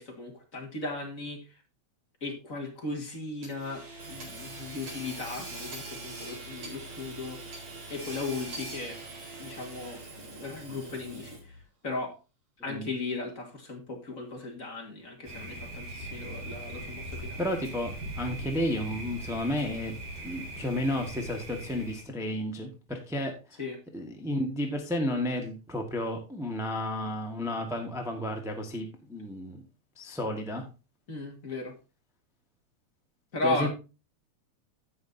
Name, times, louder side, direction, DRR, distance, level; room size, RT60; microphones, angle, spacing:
voice 1, 0.0-1.6 2.2-7.6 7.9-9.0 9.4-11.6 11.8-12.1 12.6-17.4 23.6-23.8 31.1-31.7 33.3-33.7, left 3 dB, 30° left, 2 dB, 2.1 m, -36 dB
Hammer / Sawing, 3.4-11.6, right 2 dB, 70° right, 5.5 m, -42 dB
Thunder, 15.2-22.0, right 1 dB, 85° right, 5.5 m, -40 dB
voice 2, 17.4-19.9 20.2-23.6 23.9-29.6 29.9-30.6 33.4-33.7, left 1 dB, ahead, 2 dB, 0.7 m, -32 dB
16.5 x 5.8 x 2.7 m, 0.30 s
omnidirectional pair, 3.4 m